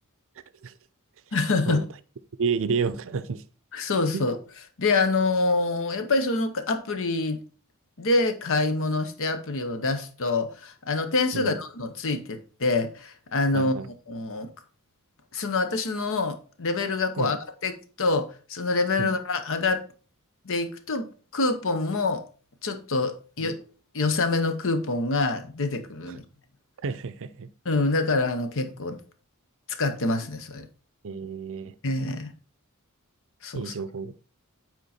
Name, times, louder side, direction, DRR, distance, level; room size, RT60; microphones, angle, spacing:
voice 1, 1.3-1.9 3.7-4.4 4.8-7.4 8.0-13.7 14.1-14.5 15.3-17.4 17.6-19.8 20.4-22.2 22.6-23.6 23.9-26.2 27.6-29.0 29.7-30.7 31.8-32.3 33.4-33.7, left 3 dB, 60° left, 1.0 m, -26 dB
voice 2, 2.4-3.4 4.1-4.2 11.3-11.6 13.5-13.9 17.2-17.3 19.0-19.1 23.4-23.5 26.8-27.5 31.0-31.7 33.5-34.1, right 5 dB, 60° right, 0.5 m, -30 dB
8.1 x 4.5 x 4.3 m
head